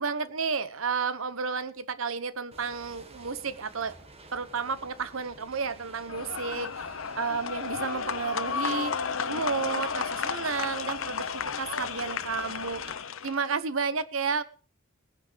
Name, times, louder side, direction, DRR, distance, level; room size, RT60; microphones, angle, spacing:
voice 1, 0.0-3.9 4.3-6.9 7.2-8.9 9.3-12.8 13.2-14.4, right 5 dB, 75° right, 1.0 m, -31 dB
sound 1, 2.5-13.0, right 2 dB, 30° right, 1.6 m, -51 dB
sound 2, 6.1-13.5, left 6 dB, 75° left, 0.8 m, -33 dB
19.0 x 9.6 x 5.1 m
head